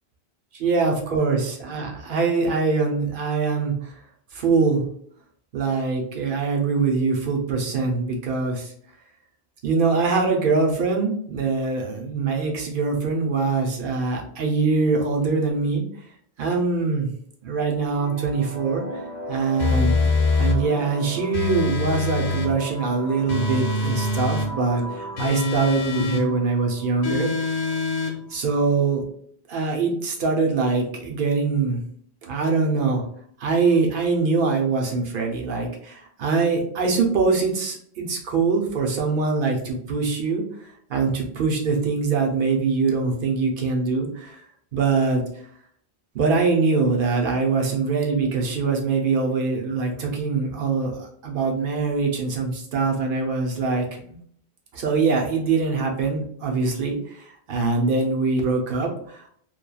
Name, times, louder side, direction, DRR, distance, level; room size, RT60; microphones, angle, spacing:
voice 1, 0.6-4.0 4.3-4.8 5.5-8.7 9.6-15.8 16.4-17.1 17.4-19.0 19.3-20.0 20.4-27.3 28.3-29.0 29.5-31.8 32.2-33.1 33.4-40.4 40.9-44.4 44.7-45.3 46.1-54.2 54.7-59.3, right 4 dB, 60° right, 1 dB, 0.8 m, -23 dB
sound 1, 17.9-28.9, right 1 dB, 45° left, 0.7 m, -37 dB
sound 2, 19.6-20.6 21.3-22.5 23.3-24.5 25.2-26.3 27.0-28.2, left 3 dB, 90° left, 1.0 m, -24 dB
3.0 x 2.2 x 2.2 m, 0.62 s
omnidirectional pair, 1.1 m